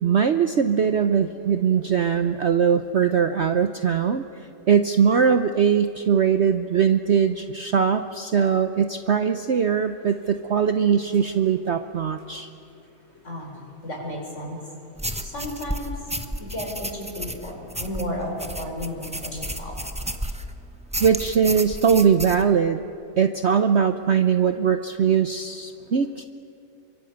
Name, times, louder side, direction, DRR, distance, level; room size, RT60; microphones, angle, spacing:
voice 1, 0.0-4.3 4.7-12.5 21.0-22.8 23.2-26.3, right 7 dB, 50° right, 8 dB, 0.9 m, -21 dB
voice 2, 13.8-14.6 15.2-16.0 16.4-19.7, left 1 dB, 45° left, 0 dB, 5.8 m, -33 dB
sound 1, 15.0-20.5 20.9-22.4, equal, 5° right, 0.8 m, -32 dB
27.0 x 24.5 x 7.9 m, 2.6 s
omnidirectional pair, 1.8 m